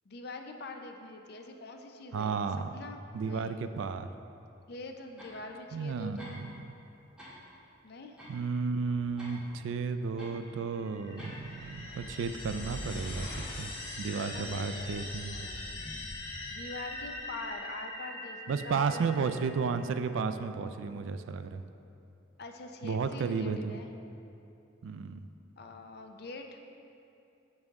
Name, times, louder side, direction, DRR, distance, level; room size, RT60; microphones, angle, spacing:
voice 1, 0.1-2.4 2.7-3.6 4.7-6.4 7.8-8.2 14.2-15.7 16.5-19.5 22.4-23.9 25.6-26.6, left 3 dB, 55° left, 4 dB, 0.5 m, -44 dB
voice 2, 2.1-2.7 3.1-4.1 5.7-6.5 8.3-13.3 13.5-15.5 18.5-21.6 22.8-23.8 24.8-25.3, right 5 dB, 75° right, 10 dB, 0.3 m, -33 dB
sound 1, 5.2-5.4 6.2-6.7 7.0-7.4 8.2-9.3 10.2-10.4 11.2-11.5, equal, 5° right, 1.6 m, -50 dB
sound 2, 10.7-19.9, left 2 dB, 85° left, 1.4 m, -42 dB
sound 3, 11.2-13.9, equal, 35° left, 1.5 m, -43 dB
7.9 x 5.4 x 3.5 m, 2.7 s
head